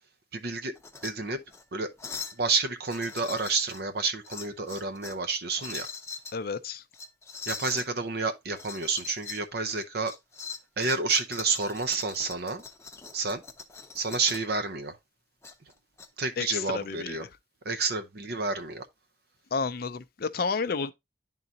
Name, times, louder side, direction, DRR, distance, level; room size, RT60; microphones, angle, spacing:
voice 1, 0.3-0.7 1.0-1.4 1.7-1.9 2.4-5.9 7.5-10.1 10.8-12.6 13.1-13.4 13.9-15.0 16.2-17.2 17.6-18.9, right 4 dB, 60° right, 0.7 m, -29 dB
sound 1, 0.7-1.1 1.5-1.6 2.0-2.4 2.8-3.8 4.2-5.2 5.6-6.3 6.9-7.9 8.5-9.4 9.7-14.5 15.4-16.1, left 5 dB, 15° left, 0.7 m, -41 dB
voice 2, 6.3-6.8 16.4-17.3 19.5-20.9, left 5 dB, 55° left, 0.5 m, -31 dB
10.5 x 3.8 x 2.8 m
head